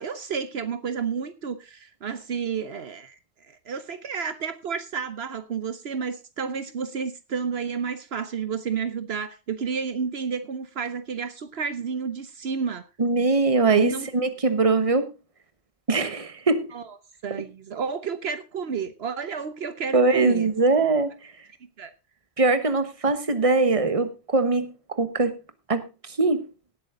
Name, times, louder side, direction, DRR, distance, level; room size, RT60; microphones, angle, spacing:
voice 1, 0.0-3.2 3.5-12.8 13.7-14.1 16.7-16.9 17.2-20.5 21.8-21.9, right 6 dB, 70° right, 1.1 m, -31 dB
voice 2, 13.0-15.1 15.9-16.7 19.9-21.1 22.4-25.4 25.7-26.5, right 3 dB, 30° right, 1.3 m, -22 dB
18.0 x 8.3 x 3.8 m
omnidirectional pair, 1.1 m